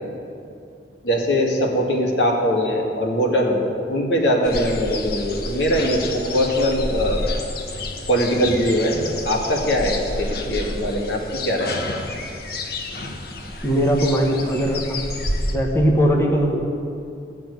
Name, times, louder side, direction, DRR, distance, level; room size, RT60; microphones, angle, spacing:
voice 1, 1.0-7.2 8.1-9.0 9.2-11.8, equal, 85° left, 0 dB, 2.1 m, -21 dB
sound 1, 4.4-15.6, left 2 dB, 60° left, 1.3 m, -30 dB
voice 2, 13.6-14.8 15.5-16.6, equal, 15° left, 0 dB, 1.2 m, -19 dB
15.5 x 6.0 x 9.5 m, 2.6 s
head